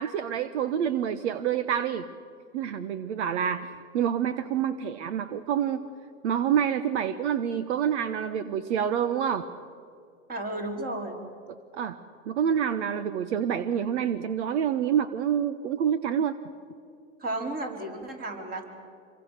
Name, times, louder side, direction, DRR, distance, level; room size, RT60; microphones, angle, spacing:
voice 1, 0.0-2.1 2.5-5.8 6.2-9.5 11.8-12.0 12.3-16.4, right 8 dB, 65° right, 12 dB, 1.2 m, -27 dB
voice 2, 10.3-11.2 17.2-18.6, right 2 dB, 25° right, 3 dB, 4.6 m, -33 dB
27.0 x 23.5 x 6.7 m, 2.3 s
hypercardioid pair, 125°, 37 cm